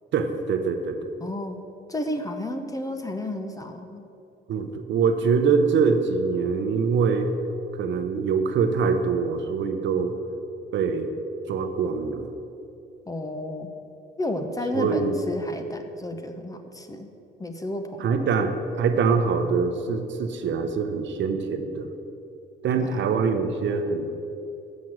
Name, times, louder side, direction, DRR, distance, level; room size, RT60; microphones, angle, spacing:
voice 1, 0.1-1.1 4.5-7.3 7.7-10.2 10.7-11.1 11.5-12.3 14.7-15.2 18.0-21.9 22.6-24.1, right 5 dB, 65° right, 7 dB, 0.8 m, -24 dB
voice 2, 1.2-1.6 1.9-4.0 13.1-13.7 14.2-17.1 17.4-18.1 22.8-22.9, left 1 dB, 15° left, 6 dB, 0.8 m, -32 dB
7.7 x 6.0 x 7.5 m, 2.8 s
cardioid pair, 90°, 20 cm